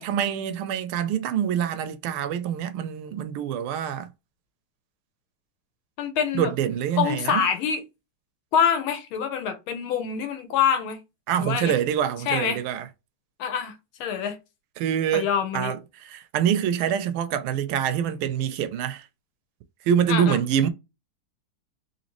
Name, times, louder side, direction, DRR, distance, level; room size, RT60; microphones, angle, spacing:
voice 1, 0.0-4.1 6.3-7.5 11.3-12.9 14.8-15.3 15.5-19.1 19.9-20.7, right 9 dB, 85° right, 1.4 m, -25 dB
voice 2, 6.0-6.5 7.0-7.8 8.5-11.0 11.4-11.7 12.3-12.6 13.4-13.7 14.0-14.4 15.1-15.7 20.1-20.4, left 7 dB, 80° left, 1.7 m, -25 dB
4.0 x 2.8 x 2.9 m
omnidirectional pair, 2.3 m